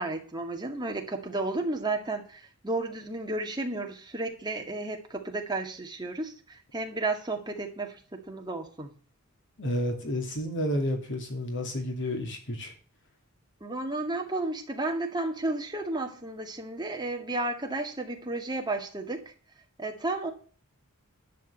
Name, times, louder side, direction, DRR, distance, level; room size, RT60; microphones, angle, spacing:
voice 1, 0.0-8.0 8.3-8.9 13.6-19.3 19.8-20.3, right 2 dB, 20° right, 3 dB, 1.9 m, -32 dB
voice 2, 9.6-12.7, equal, 60° left, 4 dB, 2.9 m, -31 dB
11.0 x 5.1 x 8.4 m, 0.41 s
head